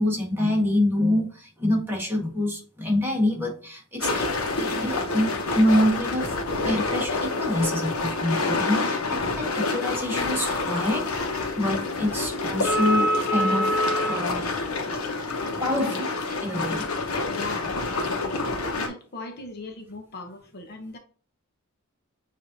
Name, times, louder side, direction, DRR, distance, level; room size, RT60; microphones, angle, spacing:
voice 1, 0.0-4.3 4.5-6.3 6.6-11.1 11.6-13.8 14.1-14.5 15.6-16.1 16.4-16.8, left 1 dB, 10° right, -2 dB, 1.4 m, -26 dB
sound 1, 4.0-18.9, left 2 dB, 75° left, 1.0 m, -27 dB
voice 2, 17.1-18.4 18.7-21.0, left 2 dB, 50° left, 4 dB, 0.7 m, -39 dB
7.0 x 2.7 x 2.6 m, 0.40 s
head